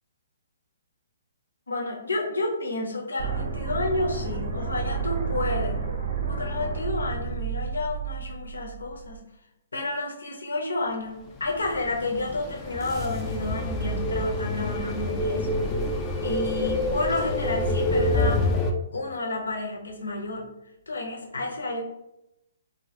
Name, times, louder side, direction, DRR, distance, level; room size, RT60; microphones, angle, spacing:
voice 1, 1.7-5.9 6.3-9.2 9.7-15.7 16.2-18.5 18.9-20.5 20.9-21.8, left 2 dB, 85° left, 0 dB, 0.6 m, -30 dB
sound 1, 3.2-9.2, right 5 dB, 55° right, 0.6 m, -31 dB
sound 2, 11.4-18.7, left 1 dB, 20° left, 0.3 m, -27 dB
2.1 x 2.1 x 2.8 m, 0.86 s
hypercardioid pair, 135°, 0 cm